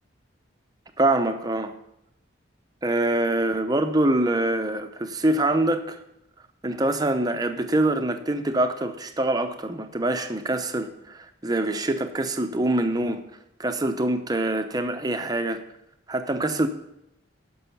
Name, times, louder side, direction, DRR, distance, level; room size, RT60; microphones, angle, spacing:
voice 1, 1.0-1.7 2.8-6.0 6.6-13.2 13.6-15.6 16.1-16.7, right 1 dB, 20° right, 7 dB, 0.7 m, -24 dB
10.0 x 6.2 x 5.5 m, 0.82 s
head